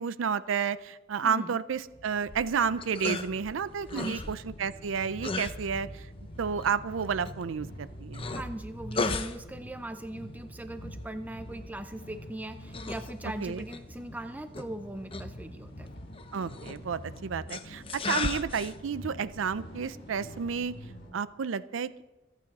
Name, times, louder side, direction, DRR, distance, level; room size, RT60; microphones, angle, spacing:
voice 1, 0.0-6.1 6.4-8.2 13.4-13.6 16.3-20.8 21.1-22.0, right 6 dB, 85° right, 16 dB, 0.5 m, -31 dB
voice 2, 1.2-1.6 3.9-4.4 8.3-15.9, right 1 dB, 10° right, 9 dB, 0.4 m, -40 dB
sound 1, 1.7-21.2, equal, 55° left, 4.3 m, -46 dB
sound 2, 2.2-20.9, left 3 dB, 30° left, 0.8 m, -39 dB
26.0 x 9.1 x 4.1 m, 1.1 s
head